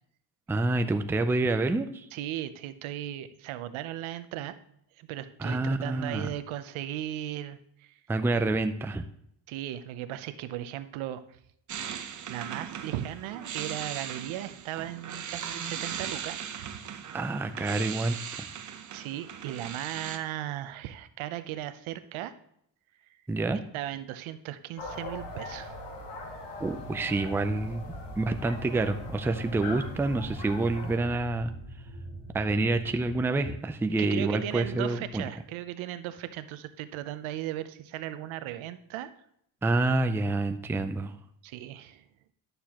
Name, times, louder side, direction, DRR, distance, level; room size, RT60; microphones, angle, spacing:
voice 1, 0.5-2.0 5.4-6.3 8.1-9.0 17.1-18.5 23.3-23.6 26.6-31.5 32.3-35.2 39.6-41.1, right 2 dB, 5° right, 8 dB, 0.4 m, -28 dB
voice 2, 2.1-4.5 5.0-7.9 9.5-11.4 11.7-16.8 18.9-22.3 23.7-25.7 34.0-39.1 41.4-42.0, right 12 dB, 80° right, 12 dB, 0.8 m, -37 dB
sound 1, 11.7-20.2, right 8 dB, 40° right, 0.8 m, -38 dB
sound 2, 24.8-31.0, left 2 dB, 60° left, 1.9 m, -41 dB
sound 3, 27.1-33.2, right 1 dB, 15° left, 3.8 m, -43 dB
11.5 x 6.8 x 2.9 m, 0.71 s
cardioid pair, 105°, 47 cm